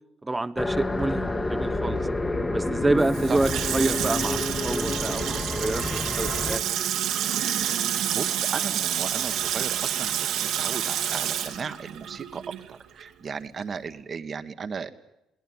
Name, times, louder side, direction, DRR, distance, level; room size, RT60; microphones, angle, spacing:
voice 1, 0.2-2.0 2.5-6.6, right 2 dB, 15° right, 14 dB, 1.1 m, -28 dB
sound 1, 0.6-6.6, left 2 dB, 20° left, 1.7 m, -29 dB
Water tap faucet / Sink (filling or washing), 3.0-12.7 13.0-13.1, right 10 dB, 80° right, 2.4 m, -28 dB
voice 2, 8.1-12.4 12.7-14.9, right 6 dB, 45° right, 10 dB, 1.5 m, -35 dB
22.5 x 17.5 x 9.7 m, 0.87 s
supercardioid pair, 75°, 0 cm